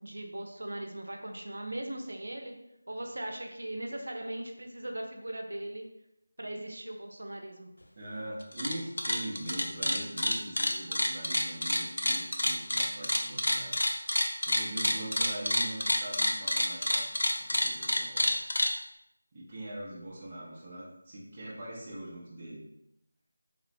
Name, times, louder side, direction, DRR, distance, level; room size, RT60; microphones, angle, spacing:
voice 1, 0.0-2.6 2.9-5.9 6.4-7.7, right 1 dB, 80° right, 3 dB, 0.5 m, -39 dB
voice 2, 8.0-13.8 14.5-17.1 17.4-18.3 19.3-22.6, right 1 dB, 15° right, -7 dB, 0.4 m, -42 dB
sound 1, 8.4-8.7 9.0-18.7, left 1 dB, 70° left, 0.4 m, -28 dB
2.9 x 2.0 x 2.5 m, 0.86 s
figure-of-eight pair, 180°, 0 cm